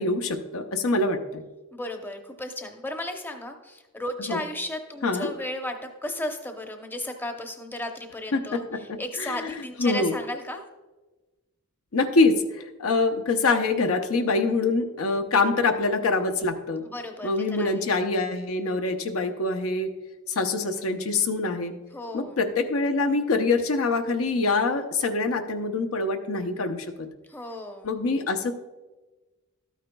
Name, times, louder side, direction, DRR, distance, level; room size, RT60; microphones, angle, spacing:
voice 1, 0.0-1.4 4.3-4.4 5.0-5.3 8.3-9.4 9.8-10.1 11.9-16.8 17.2-19.9 20.3-21.7 22.1-27.1 27.8-28.5, left 3 dB, 75° left, 6 dB, 0.7 m, -25 dB
voice 2, 1.7-10.6 16.8-17.9 21.9-22.4 27.3-27.9, left 1 dB, 10° left, 4 dB, 0.7 m, -34 dB
12.5 x 9.2 x 2.3 m, 1.2 s
head